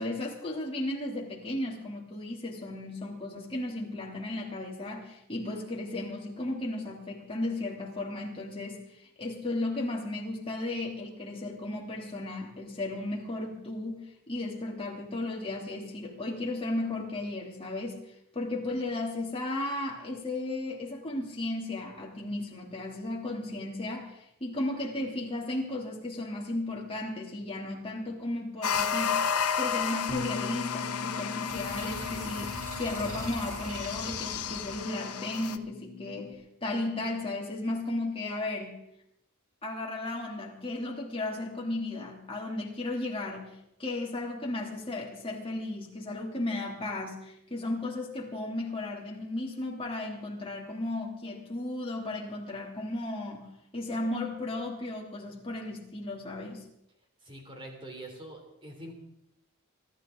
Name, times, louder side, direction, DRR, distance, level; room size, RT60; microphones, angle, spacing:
voice 1, 0.0-8.8 9.2-18.0 18.3-29.2 29.5-36.3 36.6-38.7 39.6-56.6, left 2 dB, 25° left, -2 dB, 3.0 m, -35 dB
sound 1, 28.6-35.6, left 7 dB, 85° left, 1.0 m, -32 dB
Bass guitar, 30.1-36.3, left 4 dB, 50° left, 3.6 m, -42 dB
sound 2, 31.5-34.9, right 1 dB, 65° right, 2.7 m, -43 dB
voice 2, 57.2-58.9, right 1 dB, 25° right, 2 dB, 3.4 m, -44 dB
24.5 x 12.5 x 3.9 m, 0.80 s
head